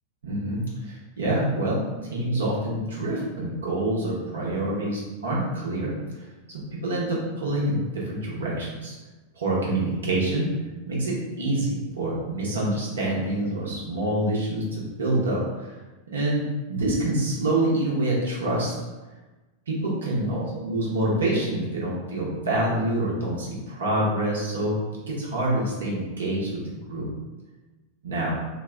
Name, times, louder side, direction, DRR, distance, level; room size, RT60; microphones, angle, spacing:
voice 1, 0.2-1.8 2.1-6.0 6.5-8.9 9.4-10.5 10.9-14.7 15.0-15.8 16.1-18.7 19.7-24.7 25.1-26.6 26.9-27.1 28.0-28.4, right 1 dB, 70° right, -5 dB, 0.9 m, -26 dB
2.8 x 2.2 x 3.6 m, 1.2 s
figure-of-eight pair, 90°, 0 cm